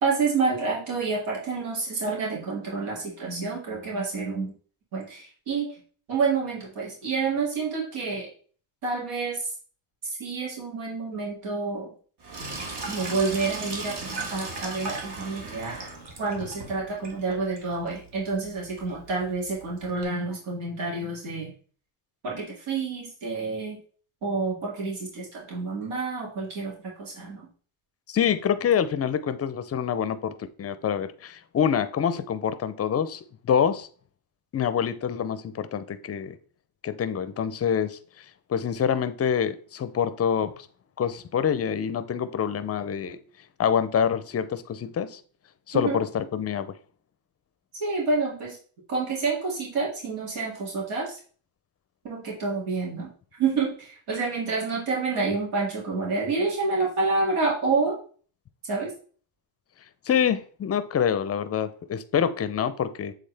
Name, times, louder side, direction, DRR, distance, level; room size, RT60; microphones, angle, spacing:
voice 1, 0.0-4.5 4.9-5.7 6.1-8.3 8.8-9.4 10.2-11.9 12.9-15.8 16.2-21.5 22.2-23.8 24.2-26.7 27.0-27.4 45.7-46.0 47.8-48.6 48.9-51.2 52.0-53.1 53.4-58.0 58.7-58.9, right 4 dB, 85° right, 2.4 m, -28 dB
Sink (filling or washing), 12.2-20.0, right 3 dB, 55° right, 1.5 m, -38 dB
voice 2, 28.1-33.9 34.5-36.4 36.8-38.2 38.5-40.7 41.0-43.2 43.6-45.2 45.7-46.7 60.1-63.1, left 8 dB, 30° left, 0.5 m, -26 dB
7.6 x 3.7 x 3.3 m
cardioid pair, 120°, 49 cm